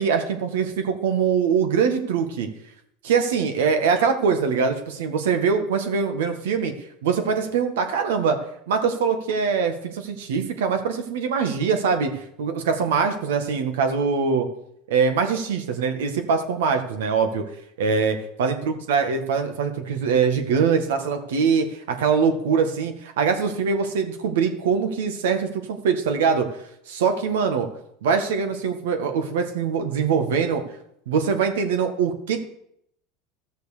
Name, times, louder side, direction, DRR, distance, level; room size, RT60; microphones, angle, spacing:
voice 1, 0.0-2.5 3.0-6.7 7.0-8.4 8.7-12.1 12.4-14.5 14.9-17.4 17.8-26.5 26.9-27.7 28.0-30.6 31.1-32.4, right 6 dB, 80° right, 6 dB, 1.8 m, -23 dB
14.0 x 6.6 x 6.8 m, 0.74 s
hypercardioid pair, 95°, 0 cm